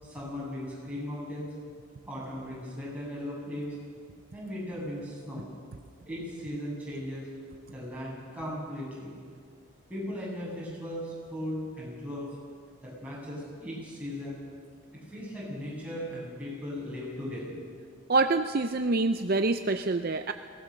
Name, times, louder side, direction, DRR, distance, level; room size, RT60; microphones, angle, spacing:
voice 1, 0.0-1.5 2.1-3.8 4.3-5.5 6.0-7.3 7.7-9.1 9.9-12.3 12.8-14.4 15.1-17.6, equal, 5° right, -6 dB, 8.0 m, -37 dB
voice 2, 18.1-20.3, right 3 dB, 45° right, 8 dB, 0.6 m, -26 dB
22.0 x 18.5 x 6.6 m, 2.1 s
head